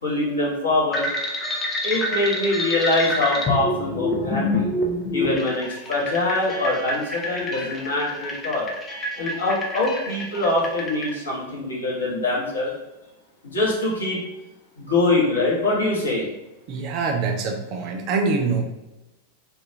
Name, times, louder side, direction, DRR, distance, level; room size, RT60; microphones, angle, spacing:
voice 1, 0.0-1.1 1.8-4.7 5.1-8.7 9.2-12.7 13.4-14.2 14.8-16.3, left 2 dB, 70° left, -4 dB, 0.9 m, -23 dB
sound 1, 0.9-11.1, left 1 dB, 20° left, 0.5 m, -27 dB
voice 2, 16.7-18.6, right 4 dB, 40° right, 3 dB, 0.4 m, -24 dB
2.3 x 2.2 x 2.9 m, 0.98 s
figure-of-eight pair, 90°, 0 cm